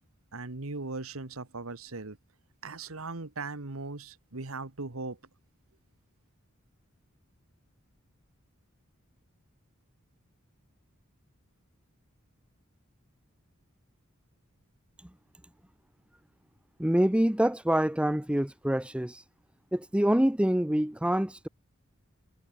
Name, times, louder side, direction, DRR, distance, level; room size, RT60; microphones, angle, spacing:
voice 1, 0.3-2.2 2.6-5.2, right 3 dB, 85° right, 1.6 m, -38 dB
voice 2, 16.8-19.2 19.7-21.5, right 1 dB, 5° right, 0.7 m, -26 dB
head